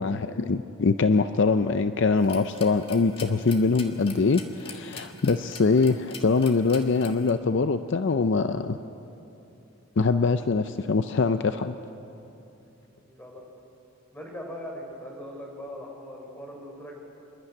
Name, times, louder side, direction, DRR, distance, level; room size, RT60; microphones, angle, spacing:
voice 1, 0.0-8.8 10.0-11.7, left 4 dB, 55° left, 10 dB, 0.5 m, -23 dB
sound 1, 2.2-7.3, left 5 dB, 25° left, 1.5 m, -43 dB
voice 2, 12.9-13.5 14.1-17.0, equal, 10° left, -1 dB, 4.1 m, -40 dB
27.0 x 11.5 x 9.7 m, 2.9 s
head